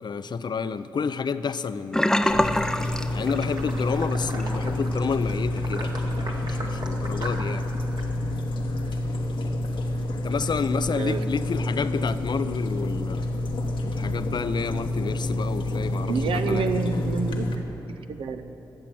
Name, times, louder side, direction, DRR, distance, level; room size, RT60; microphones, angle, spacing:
voice 1, 0.0-2.6 3.1-6.2 6.4-7.7 10.2-13.4 13.9-17.0, left 5 dB, 55° left, 13 dB, 0.5 m, -30 dB
Sink (filling or washing), 1.9-3.9 4.2-4.5 4.9-5.0, left 1 dB, 5° left, 0.5 m, -24 dB
sound 1, 2.3-17.5, left 1 dB, 75° left, 1.1 m, -28 dB
sound 2, 2.8-8.0, right 2 dB, 55° right, 1.6 m, -39 dB
voice 2, 10.9-11.2 16.0-17.7 18.1-18.4, right 5 dB, 80° right, 8 dB, 0.7 m, -28 dB
12.5 x 7.5 x 7.7 m, 3.0 s
supercardioid pair, 45°, 9 cm